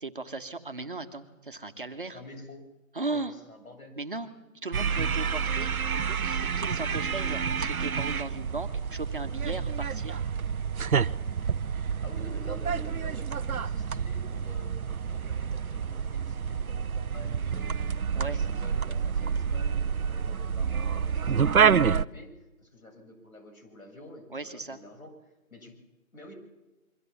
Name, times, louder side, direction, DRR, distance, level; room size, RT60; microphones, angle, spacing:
voice 1, 0.0-2.2 2.9-3.3 4.0-4.3 4.6-10.2 18.1-18.4 24.3-24.8, right 3 dB, 35° right, 7 dB, 1.5 m, -37 dB
voice 2, 2.1-2.7 3.1-4.0 12.0-14.7 15.1-17.8 18.1-25.1 25.5-25.8 26.1-26.3, left 1 dB, 75° left, 6 dB, 7.5 m, -48 dB
sound 1, 4.7-22.1, right 6 dB, 80° right, 0.8 m, -28 dB
26.5 x 23.5 x 7.2 m, 1.1 s
figure-of-eight pair, 175°, 42 cm